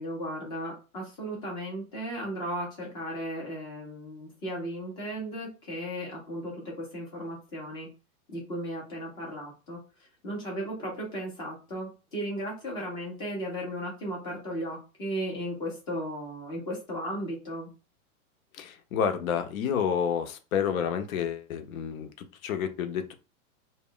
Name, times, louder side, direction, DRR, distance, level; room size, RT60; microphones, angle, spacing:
voice 1, 0.0-7.9 8.3-9.8 10.2-17.7, equal, 10° left, -2 dB, 0.4 m, -35 dB
voice 2, 18.5-23.1, left 7 dB, 70° left, 8 dB, 0.7 m, -30 dB
2.1 x 2.1 x 3.6 m, 0.31 s
hypercardioid pair, 145°, 43 cm